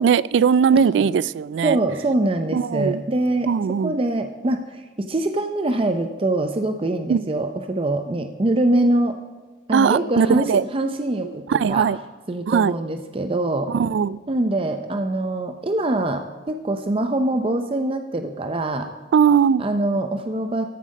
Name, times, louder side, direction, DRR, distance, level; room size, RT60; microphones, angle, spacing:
voice 1, 0.0-1.8 2.5-3.0 3.5-4.0 7.1-7.3 9.7-10.6 11.5-12.0 12.5-12.7 13.7-14.2 19.1-19.6, right 7 dB, 80° right, 20 dB, 0.3 m, -19 dB
voice 2, 1.6-3.5 3.8-9.2 9.7-11.9 12.3-13.7 14.3-18.9 19.6-20.7, right 1 dB, 30° right, 6 dB, 0.5 m, -24 dB
14.5 x 7.4 x 5.3 m, 1.2 s
head